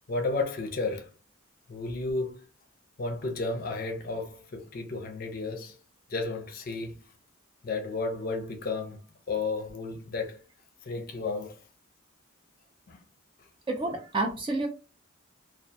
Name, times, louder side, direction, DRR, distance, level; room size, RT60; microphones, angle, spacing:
voice 1, 0.1-1.1 1.7-2.4 3.0-5.8 6.1-7.0 7.6-9.0 9.3-10.4 10.8-11.6 12.9-13.0, left 3 dB, 45° left, 0.5 m, -32 dB
voice 2, 13.7-14.7, right 2 dB, 25° right, 0.4 m, -29 dB
2.3 x 2.2 x 2.6 m
head